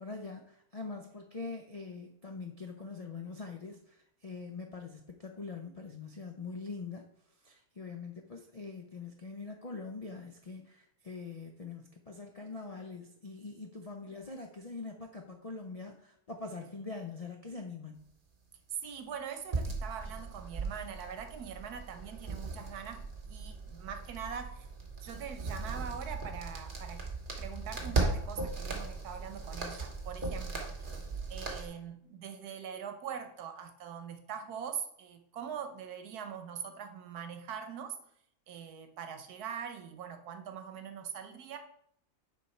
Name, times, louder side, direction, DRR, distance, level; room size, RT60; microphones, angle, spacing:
voice 1, 0.0-7.1 7.4-18.1, left 4 dB, 70° left, 3 dB, 0.3 m, -43 dB
voice 2, 18.7-24.7 25.0-27.1 27.4-30.9 31.3-38.0 38.5-41.6, right 7 dB, 80° right, 7 dB, 1.4 m, -42 dB
sound 1, 19.5-31.7, right 3 dB, 35° right, 1.3 m, -37 dB
6.8 x 5.2 x 4.4 m, 0.69 s
omnidirectional pair, 1.6 m